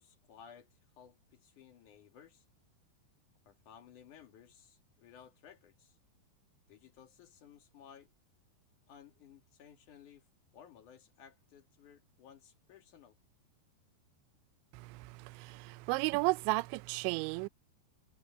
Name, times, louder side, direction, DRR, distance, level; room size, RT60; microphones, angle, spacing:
voice 1, 0.0-2.4 3.5-6.0 6.7-8.1 8.9-10.3 10.5-13.2, left 8 dB, 55° left, 2.9 m, -57 dB
voice 2, 14.7-17.5, right 23 dB, 90° right, 2.9 m, -34 dB
omnidirectional pair, 5.1 m